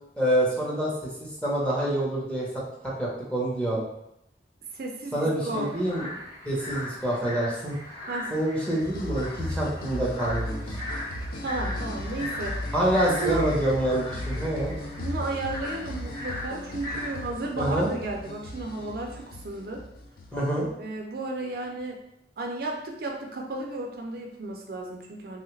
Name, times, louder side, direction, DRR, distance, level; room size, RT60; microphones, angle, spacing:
voice 1, 0.2-0.9 1.2-2.5 2.8-3.8 5.1-6.1 6.4-7.8 8.3-10.7 12.7-14.7 17.6-17.9 20.3-20.7, right 1 dB, 5° left, -6 dB, 0.8 m, -26 dB
voice 2, 4.7-5.7 8.1-8.3 11.4-12.5 13.1-13.5 15.0-19.8 20.8-22.0 22.4-25.4, right 2 dB, 55° right, 1 dB, 0.4 m, -33 dB
sound 1, 5.5-17.3, left 1 dB, 35° left, 0.9 m, -39 dB
sound 2, 8.8-20.7, left 1 dB, 55° left, 0.4 m, -36 dB
3.2 x 2.3 x 3.1 m, 0.80 s
head